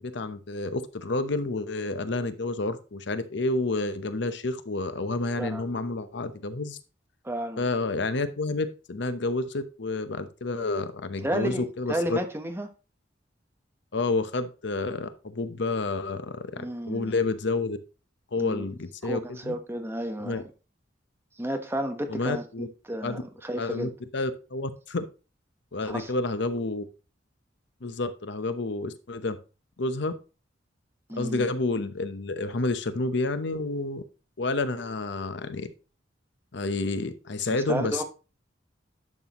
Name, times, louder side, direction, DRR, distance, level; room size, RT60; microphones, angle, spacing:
voice 1, 0.0-6.8 7.6-12.2 13.9-17.8 18.3-19.5 20.2-20.4 22.1-22.7 23.0-23.2 23.6-25.1 25.7-26.8 27.8-29.4 29.8-30.1 31.1-34.0 34.4-35.7 36.5-38.0, left 3 dB, 65° left, 0.8 m, -29 dB
voice 2, 7.2-7.6 11.2-12.7 16.6-17.2 18.4-18.6 19.0-20.5 21.4-23.9 25.9-26.1 31.1-31.5 37.5-38.0, right 1 dB, 15° right, 1.1 m, -32 dB
11.0 x 6.2 x 3.0 m
head